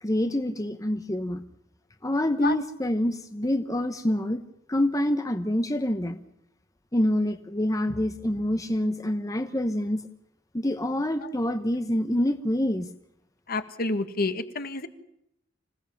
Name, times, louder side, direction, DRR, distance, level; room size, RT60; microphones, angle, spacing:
voice 1, 0.0-1.4 2.0-4.4 4.7-6.2 6.9-10.0 10.5-12.9, left 1 dB, 20° left, 8 dB, 1.0 m, -26 dB
voice 2, 13.5-14.9, left 3 dB, 50° left, 9 dB, 1.8 m, -29 dB
26.0 x 17.0 x 7.3 m, 0.79 s
head